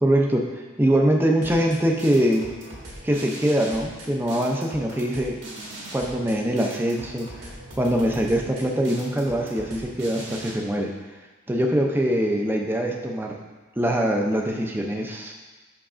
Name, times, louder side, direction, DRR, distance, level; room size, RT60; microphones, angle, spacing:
voice 1, 0.0-2.5 3.0-5.4 5.9-10.9 11.5-13.4 13.8-15.3, right 1 dB, 10° right, 1 dB, 0.5 m, -23 dB
sound 1, 1.4-10.5, right 1 dB, 65° right, 1.7 m, -40 dB
7.1 x 5.8 x 2.5 m, 1.3 s
head